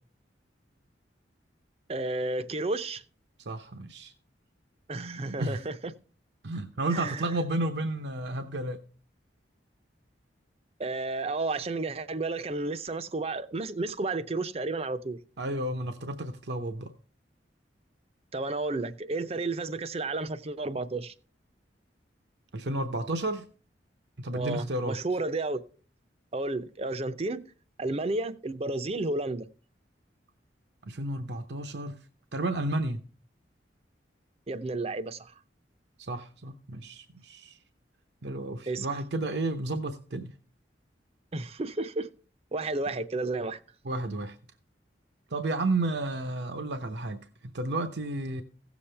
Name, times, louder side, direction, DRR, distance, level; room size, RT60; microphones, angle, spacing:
voice 1, 1.9-3.0 4.9-5.9 6.9-7.4 10.8-15.2 18.3-21.1 24.3-25.6 26.3-27.5 27.8-29.5 34.5-35.3 38.7-38.9 41.3-42.1 42.5-43.6, right 2 dB, 35° right, 0.6 m, -32 dB
voice 2, 3.5-4.1 5.4-5.6 6.4-8.8 15.4-16.9 22.5-23.4 24.2-25.0 30.9-32.0 32.3-33.0 36.0-37.6 38.2-40.3 43.8-44.4 45.3-48.4, right 2 dB, 70° right, 0.8 m, -32 dB
16.0 x 7.2 x 3.3 m
head